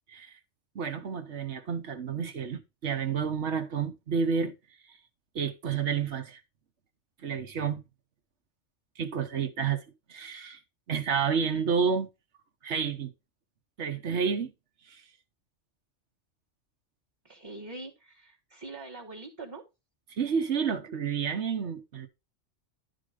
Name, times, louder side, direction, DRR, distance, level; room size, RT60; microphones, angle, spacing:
voice 1, 0.7-4.5 5.3-6.4 7.2-7.8 9.0-9.8 10.1-10.6 10.9-12.1 12.6-13.1 13.8-14.5 14.9-15.0 20.1-22.1, right 6 dB, 75° right, 1.3 m, -30 dB
voice 2, 17.2-19.7, right 2 dB, 20° right, 1.2 m, -43 dB
11.5 x 4.0 x 4.8 m
omnidirectional pair, 1.2 m